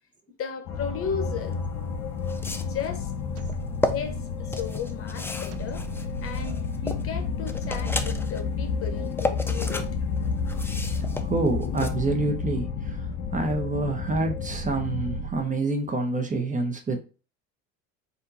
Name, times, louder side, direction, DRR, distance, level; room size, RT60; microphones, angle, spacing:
voice 1, 0.4-1.6 2.5-3.1 3.9-5.9 6.2-9.8, left 6 dB, 40° left, 1.2 m, -35 dB
sound 1, 0.7-15.2, left 6 dB, 60° left, 1.1 m, -31 dB
sound 2, 1.5-1.6 2.2-2.9 3.5-3.9 4.5-7.1 7.5-8.4 8.8-9.9 10.2-11.9, left 2 dB, 5° left, 0.5 m, -32 dB
sound 3, 3.4-4.7 5.5-7.1 7.6-9.1 9.8-11.4 11.9-13.3 14.1-15.7, right 9 dB, 45° right, 0.7 m, -40 dB
voice 2, 11.2-13.0 13.3-17.0, right 3 dB, 20° right, 1.0 m, -27 dB
4.3 x 2.7 x 4.1 m
supercardioid pair, 95°, 35 cm